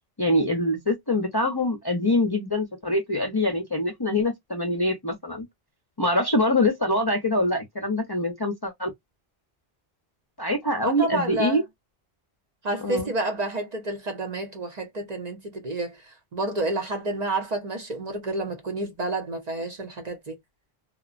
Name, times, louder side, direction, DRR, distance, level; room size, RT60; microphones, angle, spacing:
voice 1, 0.2-5.5 6.0-8.9 10.4-11.6 12.8-13.1, left 1 dB, 30° left, 0.5 m, -24 dB
voice 2, 10.8-11.6 12.6-20.4, right 2 dB, 45° right, 0.7 m, -29 dB
3.0 x 2.0 x 2.3 m
omnidirectional pair, 1.0 m